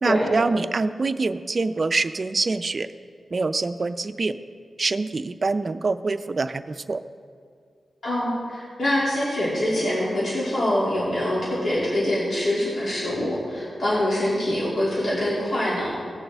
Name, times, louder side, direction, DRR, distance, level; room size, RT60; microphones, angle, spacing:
voice 1, 0.0-2.9 3.3-4.3 4.8-7.0, right 3 dB, 45° right, 11 dB, 0.4 m, -25 dB
voice 2, 8.0-15.9, left 1 dB, 60° left, -7 dB, 2.5 m, -24 dB
18.0 x 6.5 x 3.4 m, 2.1 s
wide cardioid pair, 90°, 0 cm